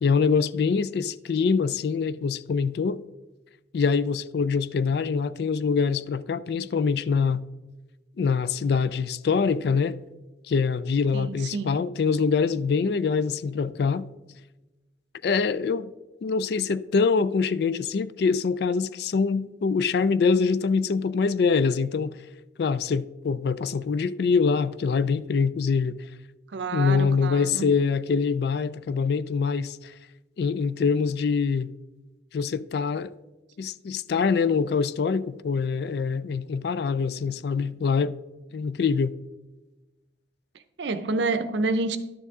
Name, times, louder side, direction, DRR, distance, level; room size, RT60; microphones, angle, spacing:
voice 1, 0.0-3.0 3.7-7.4 8.2-10.0 10.5-14.1 15.2-15.9 16.2-22.2 22.6-26.0 26.7-29.9 30.4-31.7 32.3-33.1 33.6-38.1 38.5-39.1, left 5 dB, 55° left, 0.3 m, -24 dB
voice 2, 11.1-11.8 26.5-27.7 40.8-42.0, right 3 dB, 70° right, 0.6 m, -28 dB
11.5 x 6.9 x 3.6 m
head